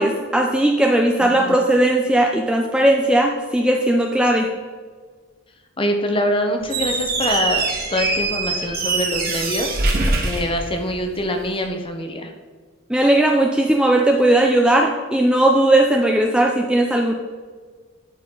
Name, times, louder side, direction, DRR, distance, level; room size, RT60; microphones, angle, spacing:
voice 1, 0.0-4.5 12.9-17.1, right 1 dB, 5° right, 1 dB, 0.4 m, -17 dB
voice 2, 1.2-1.6 5.8-12.3, left 1 dB, 25° left, 4 dB, 0.8 m, -24 dB
Squeak, 6.6-11.3, right 3 dB, 45° right, 1.2 m, -23 dB
11.5 x 4.3 x 3.8 m, 1.5 s
head